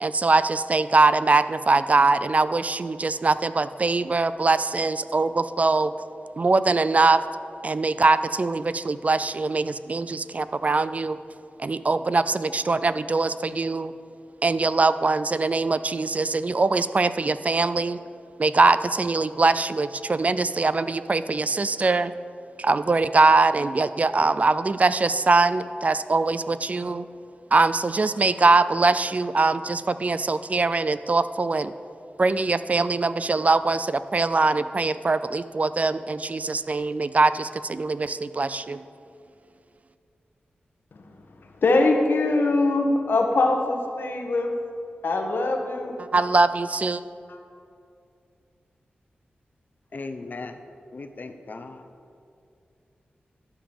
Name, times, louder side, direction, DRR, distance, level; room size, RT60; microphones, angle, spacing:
voice 1, 0.0-5.9 6.4-7.2 7.6-11.2 11.6-13.9 14.4-18.0 18.4-22.1 22.6-27.1 27.5-31.7 32.2-38.8 46.0-47.0, right 3 dB, 40° right, 14 dB, 0.3 m, -22 dB
voice 2, 41.6-44.5 45.0-46.0 47.3-47.4, left 2 dB, 75° left, 3 dB, 1.2 m, -22 dB
voice 3, 49.9-50.6 50.9-51.9, left 3 dB, 55° left, 7 dB, 0.7 m, -37 dB
11.5 x 5.1 x 7.1 m, 2.4 s
wide cardioid pair, 70°, 4 cm